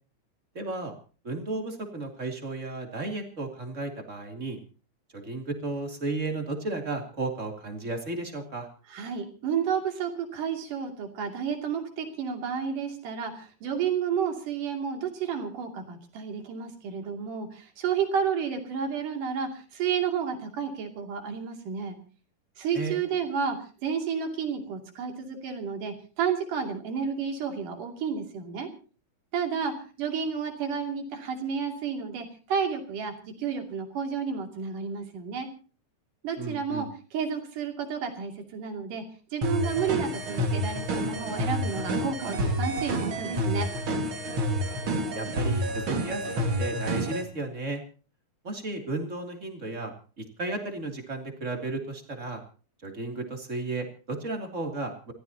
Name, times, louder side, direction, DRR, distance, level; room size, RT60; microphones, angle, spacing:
voice 1, 0.5-0.9 1.2-4.6 5.1-8.7 22.7-23.0 36.4-36.9 45.1-47.8 48.4-49.9 50.2-52.4 52.8-55.1, right 2 dB, 25° right, 3 dB, 2.9 m, -34 dB
voice 2, 8.9-22.0 22.6-28.7 29.3-29.7 30.0-35.5 36.2-39.0 39.3-43.7, right 6 dB, 80° right, 4 dB, 4.3 m, -31 dB
sound 1, 39.4-47.2, equal, 45° right, 2.5 m, -29 dB
28.5 x 14.5 x 2.9 m, 0.38 s
omnidirectional pair, 3.7 m